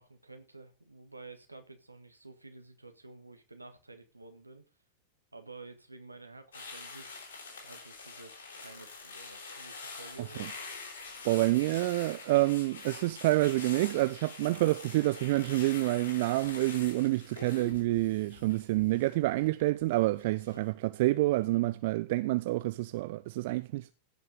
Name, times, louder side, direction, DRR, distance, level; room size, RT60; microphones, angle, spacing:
voice 1, 0.0-4.7 5.3-7.2 7.6-10.5 20.4-20.7 21.4-21.6, right 3 dB, 85° right, 1.7 m, -51 dB
sound 1, 6.5-19.9 20.2-20.5, left 4 dB, 65° left, 3.3 m, -46 dB
voice 2, 11.2-23.9, right 19 dB, 50° right, 0.5 m, -28 dB
16.5 x 5.6 x 5.2 m
figure-of-eight pair, 90°, 0 cm